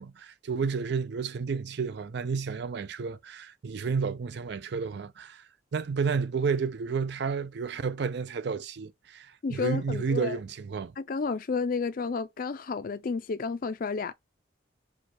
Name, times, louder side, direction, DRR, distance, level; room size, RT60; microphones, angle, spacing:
voice 1, 0.0-5.4 5.7-10.9, right 5 dB, 60° right, 0.4 m, -31 dB
voice 2, 9.4-10.4 11.0-14.1, left 4 dB, 45° left, 0.4 m, -31 dB
4.7 x 2.3 x 4.2 m
head